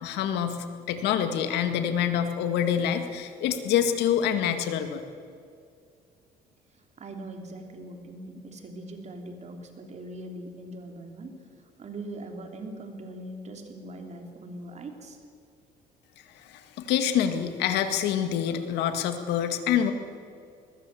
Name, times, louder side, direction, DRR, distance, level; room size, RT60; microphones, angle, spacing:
voice 1, 0.0-5.0 16.5-19.9, left 9 dB, 85° left, 8 dB, 2.0 m, -26 dB
voice 2, 6.7-11.3 11.8-15.2, right 1 dB, 40° right, 4 dB, 3.4 m, -41 dB
21.5 x 20.5 x 7.7 m, 2.3 s
cardioid pair, 110°, 17 cm